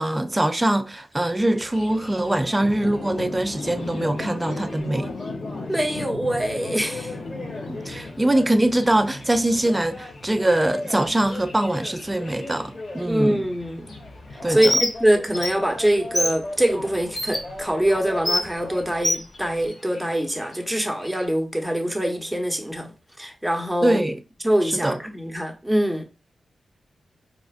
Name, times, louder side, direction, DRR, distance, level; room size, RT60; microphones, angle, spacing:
voice 1, 0.0-5.1 7.4-13.4 14.4-14.8 23.8-24.2 24.6-25.0, right 1 dB, 20° right, 0.4 m, -23 dB
sound 1, 1.4-19.0, left 2 dB, 40° left, 1.3 m, -39 dB
Thunder, 1.7-21.3, left 3 dB, 75° left, 0.6 m, -40 dB
voice 2, 5.7-7.1 13.0-13.9 14.5-22.9 23.2-24.0 24.4-26.0, right 1 dB, 5° right, 0.9 m, -24 dB
Bird, 14.6-14.9 15.3-15.5 16.1-16.3 17.1-17.4 18.2-18.4 19.0-19.2, left 1 dB, 20° left, 1.0 m, -22 dB
4.1 x 2.4 x 2.4 m
supercardioid pair, 40°, 0 cm